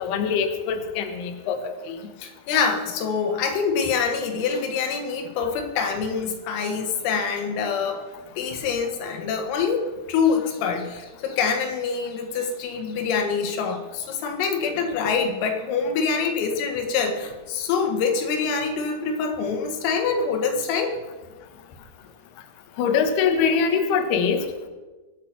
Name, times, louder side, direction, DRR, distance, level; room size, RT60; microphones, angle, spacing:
voice 1, 0.0-1.6 1.9-2.0 22.8-24.4, left 6 dB, 65° left, 6 dB, 2.9 m, -23 dB
voice 2, 2.2-8.0 8.4-21.0, left 5 dB, 90° left, 4 dB, 4.4 m, -25 dB
24.0 x 8.6 x 6.0 m, 1.2 s
omnidirectional pair, 5.8 m